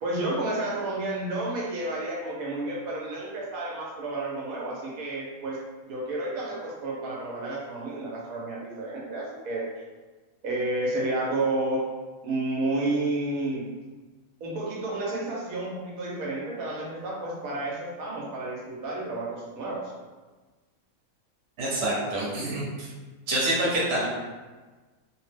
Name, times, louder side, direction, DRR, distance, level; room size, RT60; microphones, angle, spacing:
voice 1, 0.0-9.7 10.4-11.8 12.2-13.7 14.4-19.9, right 2 dB, 80° right, -4 dB, 1.0 m, -31 dB
voice 2, 21.6-22.9 23.3-24.1, right 1 dB, 55° right, -5 dB, 1.0 m, -26 dB
2.9 x 2.0 x 3.2 m, 1.3 s
omnidirectional pair, 1.5 m